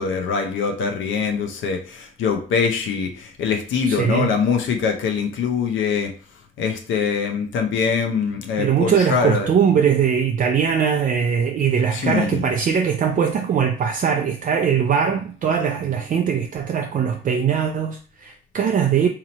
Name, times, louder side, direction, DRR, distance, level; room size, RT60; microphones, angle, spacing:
voice 1, 0.0-6.1 6.6-9.5 11.9-12.5, left 6 dB, 75° left, 0.7 m, -23 dB
voice 2, 3.8-4.3 8.6-19.1, right 7 dB, 40° right, 0.4 m, -21 dB
2.9 x 2.7 x 4.0 m
cardioid pair, 90°, 20 cm